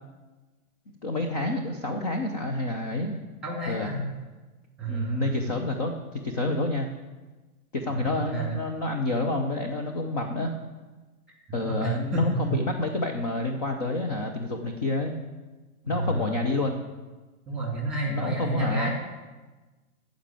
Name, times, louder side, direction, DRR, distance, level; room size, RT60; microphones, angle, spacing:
voice 1, 1.0-3.2 3.7-3.9 4.9-6.9 7.7-10.5 11.5-15.1 15.9-16.8 18.1-18.9, left 2 dB, 30° left, 4 dB, 0.6 m, -29 dB
voice 2, 3.4-4.1 4.8-5.3 7.9-8.6 11.6-12.6 15.9-16.4 17.5-18.9, right 1 dB, ahead, -1 dB, 1.8 m, -29 dB
14.0 x 5.2 x 8.8 m, 1.2 s
hypercardioid pair, 175°, 44 cm